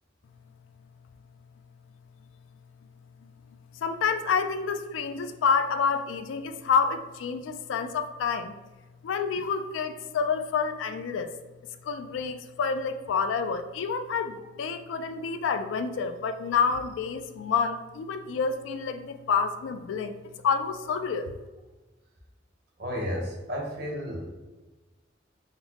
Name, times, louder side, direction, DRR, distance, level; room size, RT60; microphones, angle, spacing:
voice 1, 3.8-8.5 9.0-11.3 11.8-20.2 20.4-21.3, left 5 dB, 80° left, 9 dB, 0.3 m, -28 dB
voice 2, 22.8-24.3, equal, 60° right, -2 dB, 0.8 m, -32 dB
3.9 x 2.1 x 2.8 m, 1.2 s
head